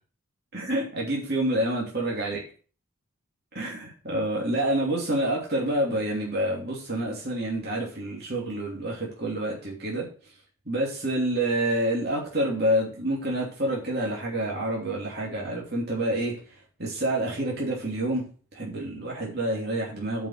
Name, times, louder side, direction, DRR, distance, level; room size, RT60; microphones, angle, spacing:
voice 1, 0.5-2.4 3.5-10.1 10.7-16.4 16.8-18.2 18.5-20.3, right 1 dB, 50° right, -3 dB, 2.9 m, -28 dB
7.8 x 5.4 x 7.4 m, 0.38 s
head